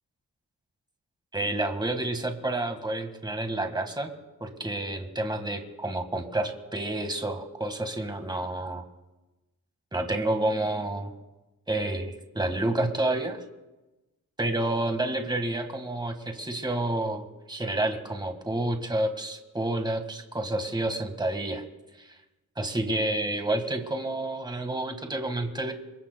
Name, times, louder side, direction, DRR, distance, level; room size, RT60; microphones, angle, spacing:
voice 1, 1.3-4.1 4.4-8.8 9.9-11.1 11.7-13.4 14.4-21.6 22.0-22.1 22.6-25.7, right 1 dB, 10° right, 5 dB, 1.7 m, -29 dB
26.5 x 23.5 x 2.3 m, 1.1 s
cardioid pair, 75°, 37 cm